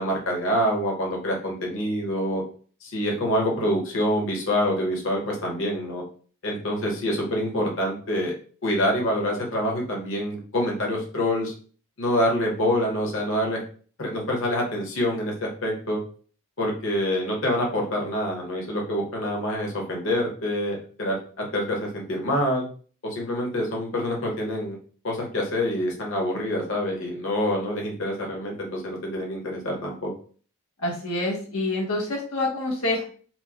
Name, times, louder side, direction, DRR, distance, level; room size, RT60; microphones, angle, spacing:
voice 1, 0.0-2.4 2.8-6.0 6.4-8.3 8.6-11.5 12.0-13.6 14.0-16.0 16.6-22.6 23.0-24.8 25.0-30.1, equal, 65° left, -1 dB, 1.0 m, -26 dB
voice 2, 30.8-33.0, left 2 dB, 85° left, -2 dB, 0.9 m, -27 dB
4.3 x 2.1 x 2.9 m, 0.42 s
head